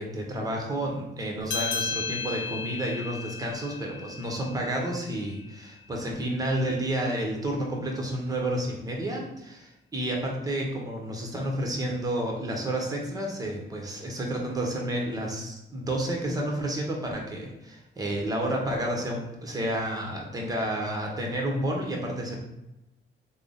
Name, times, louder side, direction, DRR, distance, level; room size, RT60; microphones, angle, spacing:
voice 1, 0.0-22.4, right 1 dB, 20° right, 0 dB, 0.9 m, -30 dB
sound 1, 1.5-6.4, left 6 dB, 70° left, 0.5 m, -35 dB
3.3 x 2.1 x 3.8 m, 0.92 s
cardioid pair, 90°, 20 cm